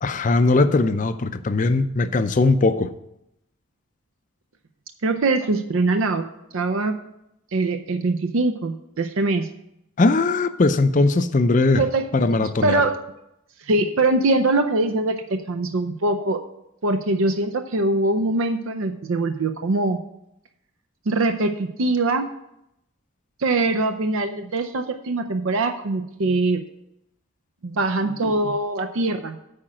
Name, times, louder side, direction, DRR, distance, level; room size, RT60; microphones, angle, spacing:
voice 1, 0.0-2.9 10.0-11.8 12.1-12.8, left 3 dB, 35° left, 11 dB, 0.4 m, -19 dB
voice 2, 5.0-6.3 6.5-7.0 7.5-9.5 11.7-13.0 13.6-16.4 16.8-20.0 21.1-22.3 23.4-26.6 27.6-29.4, right 2 dB, 65° right, 7 dB, 0.6 m, -23 dB
8.8 x 5.0 x 7.5 m, 0.83 s
head